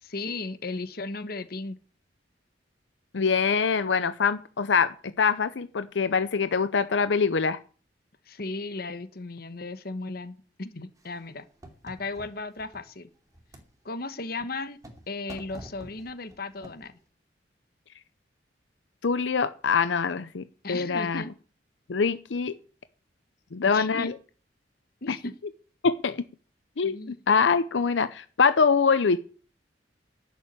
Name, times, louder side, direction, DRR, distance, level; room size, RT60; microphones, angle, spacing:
voice 1, 0.0-1.8 8.3-11.5 11.8-13.1 13.8-14.8 15.1-16.9 20.6-21.3 23.7-24.2 25.0-25.4 26.8-27.2, left 3 dB, 55° left, 12 dB, 1.2 m, -35 dB
voice 2, 3.1-7.6 19.0-21.2 21.9-22.6 23.5-24.1 25.1-25.2 25.8-26.2 26.8-29.2, left 5 dB, 85° left, 13 dB, 0.6 m, -24 dB
sound 1, 11.0-12.8 13.3-13.7 14.4-15.0 15.3-16.9, equal, 20° right, 2.7 m, -47 dB
11.0 x 7.1 x 8.9 m, 0.39 s
head